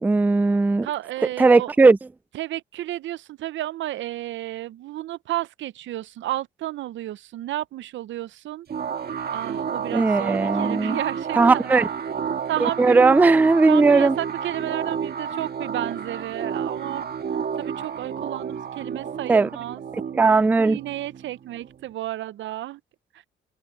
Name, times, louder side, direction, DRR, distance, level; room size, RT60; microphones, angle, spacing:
voice 1, 0.0-0.9 1.4-2.0 9.9-11.0 11.3-11.9 12.6-14.2 19.3-19.5 20.1-20.8, right 3 dB, 10° right, 0.3 m, -17 dB
voice 2, 0.8-1.7 2.3-8.7 9.3-11.7 12.5-13.1 13.7-17.1 17.6-19.8 20.6-22.8, right 14 dB, 70° right, 0.6 m, -32 dB
sound 1, 8.7-21.9, right 7 dB, 50° right, 1.8 m, -31 dB
cardioid pair, 90°, 20 cm